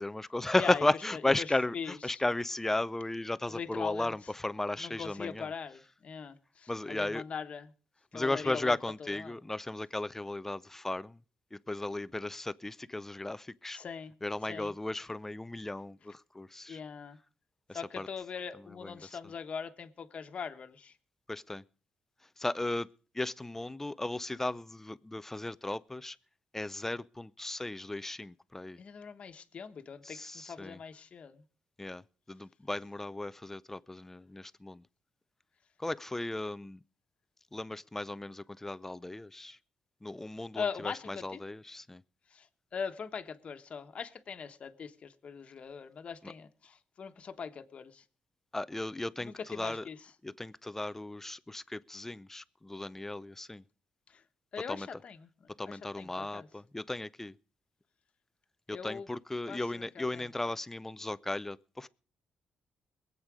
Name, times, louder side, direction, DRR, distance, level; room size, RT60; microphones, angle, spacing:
voice 1, 0.0-5.5 6.7-7.2 8.1-11.2 11.5-13.8 14.2-16.8 17.7-18.1 18.8-19.2 21.3-21.6 22.4-22.9 23.1-26.2 26.5-28.8 30.0-30.8 31.8-32.0 32.3-34.8 35.8-36.8 37.5-39.6 40.0-42.0 46.2-46.3 48.5-49.9 50.2-53.6 54.7-54.9 55.6-57.3 58.7-61.9, left 2 dB, 15° left, 0.5 m, -35 dB
voice 2, 0.5-0.8 1.4-1.5 1.7-2.2 3.5-4.1 4.8-7.7 8.1-9.3 13.7-14.1 14.5-14.7 16.7-17.2 17.7-20.9 28.8-31.4 40.5-41.4 42.3-42.5 42.7-48.0 49.2-50.0 54.5-55.3 55.7-56.5 58.7-59.1 59.5-60.2, left 6 dB, 50° left, 1.3 m, -41 dB
22.0 x 8.2 x 4.9 m
cardioid pair, 95°, 3 cm